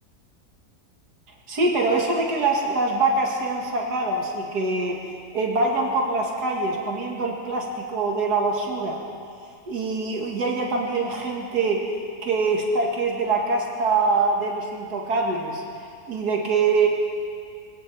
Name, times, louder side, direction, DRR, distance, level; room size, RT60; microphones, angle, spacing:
voice 1, 1.5-5.0 5.3-9.0 9.7-11.8 12.2-15.6 16.1-16.9, right 3 dB, 90° right, -1 dB, 2.1 m, -24 dB
22.0 x 17.5 x 3.3 m, 2.3 s
omnidirectional pair, 1.7 m